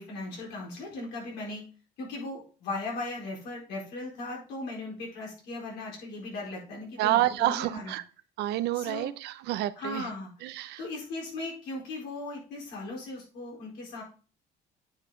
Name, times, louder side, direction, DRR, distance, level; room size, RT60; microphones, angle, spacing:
voice 1, 0.0-1.6 2.0-7.9 8.7-9.1 9.8-10.3 10.8-14.0, left 2 dB, 90° left, -2 dB, 4.2 m, -38 dB
voice 2, 7.0-8.0 8.4-10.1 10.4-10.8, right 15 dB, 80° right, 13 dB, 0.6 m, -28 dB
8.8 x 5.7 x 3.7 m, 0.36 s
cardioid pair, 110°, 17 cm